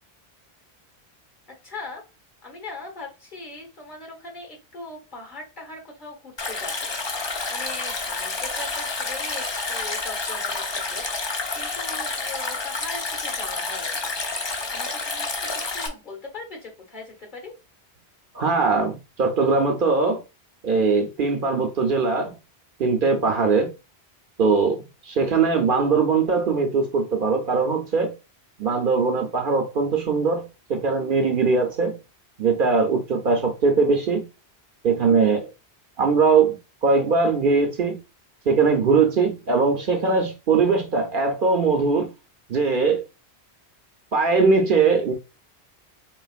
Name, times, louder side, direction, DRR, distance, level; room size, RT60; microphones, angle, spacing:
voice 1, 1.6-2.0 2.4-6.9 7.2-14.2 14.7-17.5, left 2 dB, 45° left, 1.6 m, -40 dB
Stream, 6.4-15.9, left 3 dB, 30° left, 0.5 m, -29 dB
voice 2, 18.3-20.2 20.6-22.3 22.8-23.7 24.4-28.2 28.6-32.0 32.4-34.3 34.8-35.5 36.0-38.0 38.5-42.1 42.5-43.0 44.1-45.1, right 4 dB, 55° right, 0.8 m, -21 dB
3.9 x 3.7 x 2.4 m
omnidirectional pair, 1.1 m